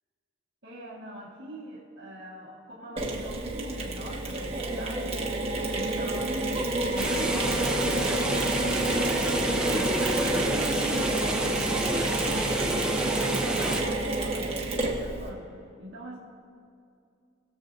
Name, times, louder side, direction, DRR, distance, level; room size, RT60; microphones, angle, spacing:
voice 1, 0.6-5.3 5.7-16.2, equal, 55° right, -8 dB, 1.6 m, -42 dB
Mechanisms, 3.0-15.3, right 2 dB, 30° right, 1.2 m, -29 dB
sound 1, 5.5-12.4, left 1 dB, 55° left, 0.8 m, -44 dB
sound 2, 7.0-13.8, right 1 dB, 5° right, 0.6 m, -29 dB
20.5 x 7.2 x 2.6 m, 2.4 s
head